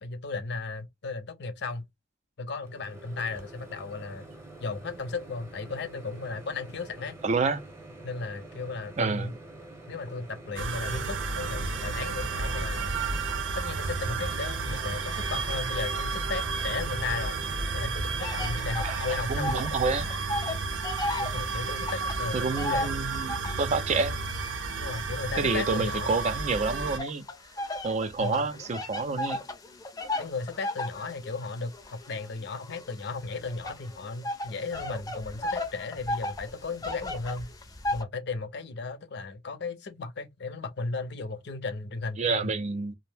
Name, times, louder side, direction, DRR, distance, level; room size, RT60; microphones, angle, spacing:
voice 1, 0.0-1.9 2.4-4.3 4.6-7.2 8.0-9.3 9.9-13.0 13.5-17.4 17.7-19.8 21.2-23.0 24.8-26.2 28.2-28.4 30.2-37.5 37.9-42.5, left 4 dB, 65° left, 0.6 m, -35 dB
Microwave oven, 2.6-18.9, right 2 dB, 15° right, 0.7 m, -47 dB
voice 2, 7.2-7.6 9.0-9.4 18.8-20.1 22.3-24.2 25.4-27.3 27.8-29.4 42.2-42.9, right 4 dB, 35° right, 0.4 m, -28 dB
sound 1, 10.6-27.0, right 4 dB, 90° right, 0.6 m, -32 dB
sound 2, 18.2-19.8 20.0-23.7 24.3-26.4 27.0-38.0, left 1 dB, 20° left, 0.5 m, -35 dB
2.6 x 2.0 x 3.3 m
head